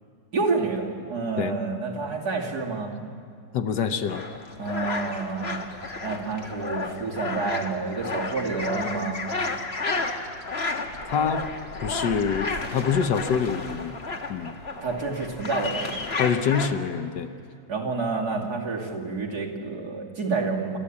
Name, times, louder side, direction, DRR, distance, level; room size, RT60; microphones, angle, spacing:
voice 1, 0.3-2.9 4.6-9.2 14.8-16.0 17.7-20.8, right 4 dB, 60° right, -2 dB, 3.1 m, -29 dB
voice 2, 3.5-4.2 11.0-11.5 11.8-13.9 14.3-14.5 16.2-17.3, left 7 dB, 70° left, 8 dB, 1.6 m, -25 dB
sound 1, 4.1-16.7, left 3 dB, 35° left, 1.5 m, -32 dB
29.5 x 13.0 x 8.6 m, 2.3 s
omnidirectional pair, 2.0 m